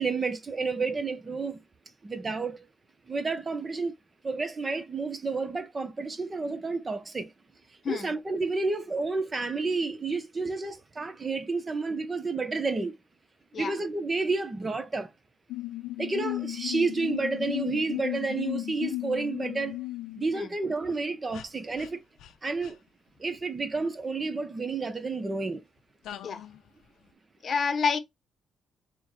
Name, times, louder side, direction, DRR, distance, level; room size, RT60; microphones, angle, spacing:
voice 1, 0.0-1.6 2.0-2.6 3.1-3.9 4.2-7.3 7.9-12.9 13.6-15.1 16.0-19.7 20.2-22.0 22.4-22.8 23.2-25.6, right 3 dB, 30° right, 0.8 m, -30 dB
sound 1, 15.5-20.3 21.3-21.5 21.8-21.9 22.2-22.3 22.6-22.7 26.1-26.6, left 16 dB, 80° left, 0.5 m, -35 dB
voice 2, 27.4-28.0, left 5 dB, 45° left, 0.8 m, -28 dB
4.4 x 2.2 x 4.0 m
cardioid pair, 90°, 0 cm